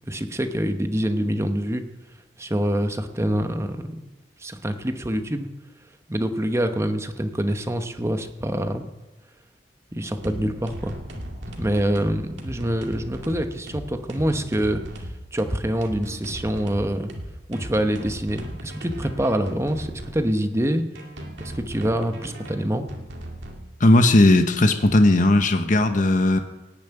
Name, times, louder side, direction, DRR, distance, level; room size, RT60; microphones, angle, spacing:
voice 1, 0.1-1.8 2.4-4.1 4.4-5.5 6.1-8.9 9.9-11.0 11.6-14.8 15.3-17.1 17.5-19.9 20.1-20.8 21.4-22.9, right 1 dB, 15° right, 7 dB, 1.0 m, -25 dB
sound 1, 10.2-20.2 21.0-23.6, right 1 dB, 80° right, 2.2 m, -37 dB
voice 2, 23.8-26.4, left 2 dB, 45° left, 8 dB, 0.9 m, -17 dB
17.5 x 7.3 x 9.1 m, 1.1 s
head